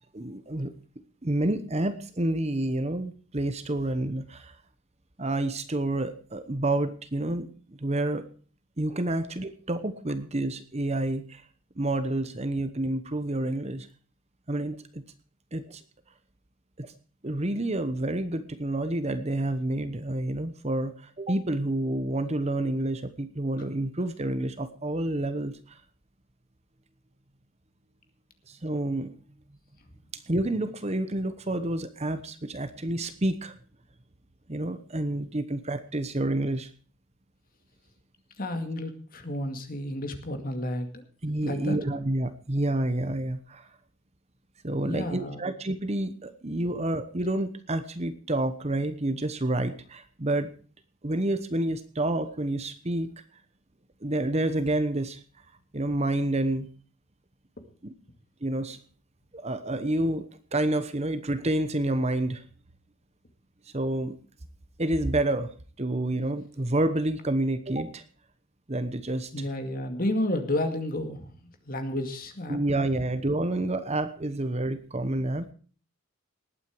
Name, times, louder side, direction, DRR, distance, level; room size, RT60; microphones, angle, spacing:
voice 1, 0.1-0.7 1.2-4.5 5.2-8.2 8.8-11.4 11.8-13.9 14.5-15.0 15.5-15.8 16.8-16.9 17.2-25.8 28.5-29.2 30.1-33.5 34.5-36.7 41.2-43.7 44.6-50.5 51.0-53.1 54.0-55.2 55.7-56.7 57.8-57.9 58.4-58.8 59.3-60.3 60.5-62.4 63.7-64.2 64.8-65.5 65.8-68.0 68.7-69.5 72.5-75.5, right 1 dB, 30° right, 11 dB, 1.0 m, -29 dB
voice 2, 38.4-41.0 41.4-41.8 44.8-45.5 57.6-57.7 69.3-72.6 72.9-73.0, left 1 dB, 40° left, 6 dB, 2.2 m, -31 dB
19.5 x 9.1 x 4.7 m, 0.41 s
head